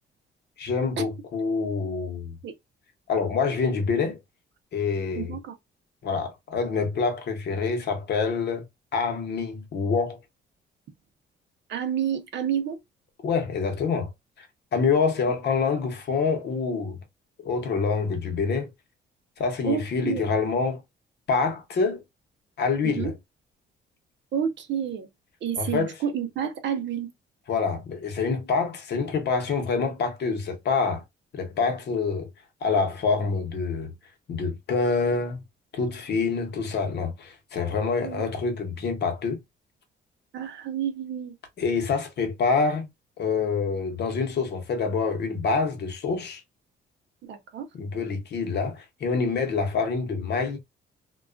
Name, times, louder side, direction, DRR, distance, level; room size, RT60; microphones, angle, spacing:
voice 1, 0.6-2.4 3.1-4.2 4.7-5.3 6.0-8.6 8.9-10.2 13.2-14.1 14.4-14.5 14.7-17.0 17.4-18.7 19.4-20.8 21.3-22.0 22.6-23.1 25.6-25.9 27.5-31.0 31.3-32.3 32.6-33.9 34.3-35.4 35.7-39.4 41.6-42.9 43.2-46.4 47.7-50.6, left 4 dB, 60° left, 0.9 m, -26 dB
voice 2, 5.1-5.5 11.7-12.8 19.7-20.2 22.8-23.1 24.3-25.1 25.4-27.1 38.0-38.2 40.3-41.3 47.2-47.7, right 8 dB, 65° right, 0.6 m, -29 dB
2.3 x 2.3 x 2.4 m
cardioid pair, 90°, 20 cm